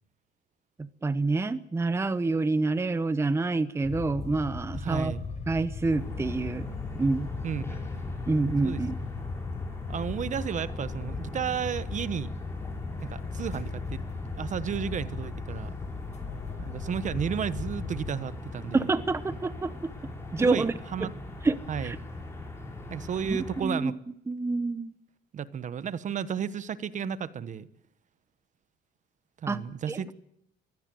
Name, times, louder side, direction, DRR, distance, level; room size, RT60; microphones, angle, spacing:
voice 1, 0.8-5.1 5.5-6.6 7.0-7.3 8.3-9.0 18.7-19.9 20.3-20.7 21.0-21.1 21.4-22.0 23.3-23.9 24.3-24.9 29.5-29.6 29.9-30.0, right 3 dB, 15° right, 13 dB, 0.9 m, -27 dB
sound 1, 3.8-18.2, left 4 dB, 35° left, 4.2 m, -37 dB
voice 2, 4.7-5.2 7.4-7.8 8.6-8.8 9.9-12.3 13.0-14.0 14.4-15.7 16.6-18.9 19.4-19.5 20.4-21.1 21.7-21.9 22.9-23.9 25.3-27.7 29.4-30.1, right 7 dB, 40° right, 15 dB, 1.2 m, -33 dB
sound 2, 5.9-23.6, left 2 dB, 15° left, 6.7 m, -41 dB
23.5 x 17.0 x 9.3 m, 0.76 s
cardioid pair, 130°, 19 cm